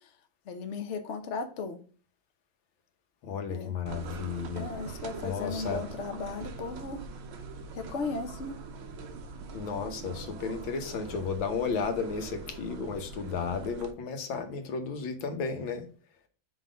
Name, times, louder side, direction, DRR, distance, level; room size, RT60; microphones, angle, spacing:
voice 1, 0.5-1.8 3.5-3.7 4.6-7.0 7.7-8.6, left 4 dB, 50° left, 0.9 m, -36 dB
voice 2, 3.2-4.7 5.2-5.8 9.5-15.9, left 5 dB, 75° left, 1.7 m, -33 dB
sound 1, 3.9-13.9, right 4 dB, 80° right, 1.7 m, -43 dB
5.6 x 4.0 x 5.0 m
omnidirectional pair, 2.2 m